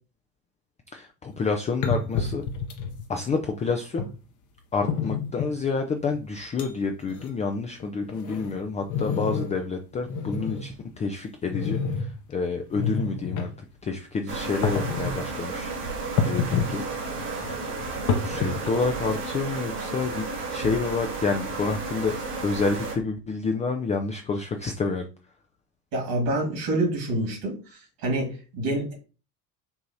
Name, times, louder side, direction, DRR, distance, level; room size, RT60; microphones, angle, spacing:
voice 1, 0.9-2.5 3.1-4.1 4.7-13.5 13.8-16.8 18.2-22.1 22.4-25.1, left 4 dB, 15° left, 4 dB, 0.4 m, -29 dB
sound 1, 1.3-1.4 1.8-3.0 4.0-4.1 4.9-5.5 6.1-6.2 6.6-6.7 7.0-7.3 7.8-9.6 10.0-10.7 11.5-12.1 12.6-13.5 14.5-15.2 16.2-16.8 17.1-18.9, left 5 dB, 40° left, 0.9 m, -28 dB
sound 2, 14.3-23.0, right 3 dB, 90° right, 1.2 m, -33 dB
voice 2, 25.9-27.5 28.0-28.9, right 1 dB, 60° right, 0 dB, 2.1 m, -26 dB
5.6 x 2.8 x 2.8 m, 0.34 s
hypercardioid pair, 70°, 45 cm